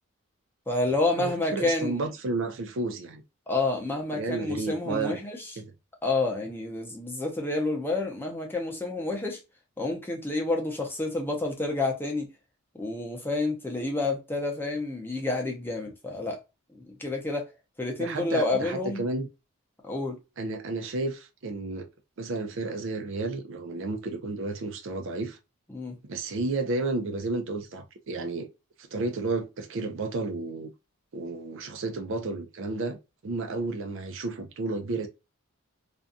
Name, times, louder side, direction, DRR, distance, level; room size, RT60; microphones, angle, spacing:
voice 1, 0.7-2.0 3.5-5.4 6.0-9.4 9.8-12.3 12.8-16.4 16.9-17.5 17.8-19.0 19.8-20.2 25.7-25.9, left 2 dB, 10° left, 0.6 m, -29 dB
voice 2, 1.2-3.2 4.1-5.2 5.6-5.7 18.0-19.3 20.4-21.9 22.2-25.4 26.1-28.5 28.8-30.7 31.1-33.0 33.2-35.1, right 3 dB, 55° right, 0.4 m, -32 dB
2.5 x 2.2 x 2.5 m
head